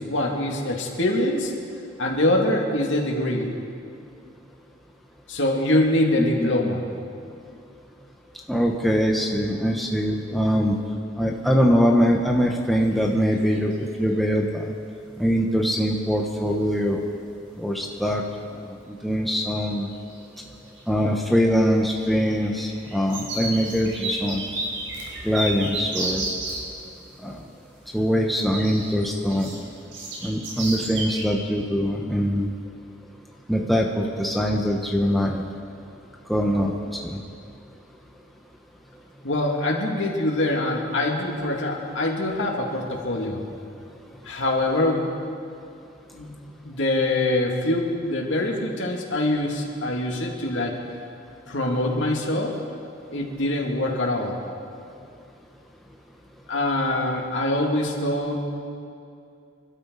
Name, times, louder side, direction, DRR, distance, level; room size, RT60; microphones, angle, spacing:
voice 1, 0.0-1.5 2.0-3.5 5.3-6.8 39.2-43.4 44.2-45.1 46.1-46.3 46.6-50.7 51.5-52.6 53.1-54.4 56.5-58.4, left 1 dB, 75° left, -1 dB, 2.5 m, -24 dB
voice 2, 6.4-6.7 8.5-10.8 11.2-14.7 15.2-17.0 17.6-18.2 18.7-19.9 20.9-24.4 25.2-26.2 27.2-27.4 27.9-29.5 30.2-32.5 33.5-35.4 36.3-36.7 37.0-37.2, equal, ahead, -1 dB, 1.0 m, -23 dB
sound 1, 12.8-13.0 13.3-13.9 15.9-16.0 16.6-16.7 17.0-17.4 17.7-18.2 18.8-18.9 19.9-20.4 20.7-26.7 28.5-31.2, right 2 dB, 85° right, 4.4 m, -32 dB
28.0 x 12.5 x 4.1 m, 2.5 s
head